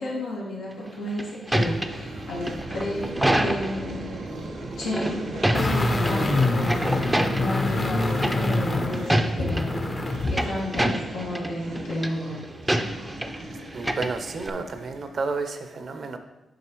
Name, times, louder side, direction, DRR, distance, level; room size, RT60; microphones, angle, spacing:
voice 1, 0.0-4.1 4.6-9.9 10.3-12.5, left 1 dB, 90° left, 2.0 m, -32 dB
sound 1, 0.9-3.9 4.8-6.1 6.4-7.6 8.2-8.6 8.9-9.6 10.1-11.5 11.7-12.1 12.7-13.4 13.7-14.5, right 1 dB, 10° right, 0.5 m, -26 dB
sound 2, 1.5-15.3, right 1 dB, 85° right, 1.2 m, -37 dB
sound 3, 5.5-10.4 10.8-10.9, left 2 dB, 35° left, 0.8 m, -25 dB
voice 2, 13.7-16.2, right 4 dB, 60° right, 0.7 m, -31 dB
7.7 x 5.3 x 3.0 m
supercardioid pair, 60°, 0 cm